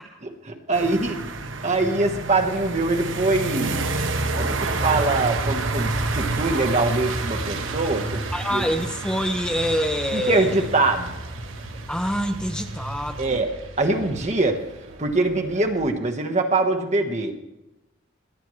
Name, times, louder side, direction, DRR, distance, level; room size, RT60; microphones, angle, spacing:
voice 1, 0.7-1.2 1.6-3.8 4.3-8.2 8.5-8.6 10.1-11.2 13.2-13.5 13.8-14.6 15.0-17.3, right 2 dB, 35° right, 4 dB, 1.3 m, -23 dB
sound 1, 0.7-13.4, right 3 dB, 65° right, 1.0 m, -30 dB
Truck, 3.6-15.9, right 1 dB, 85° right, 1.5 m, -34 dB
voice 2, 8.3-10.7 11.9-13.5 17.1-17.3, equal, 5° left, 6 dB, 0.7 m, -26 dB
22.5 x 9.0 x 3.2 m, 0.96 s
head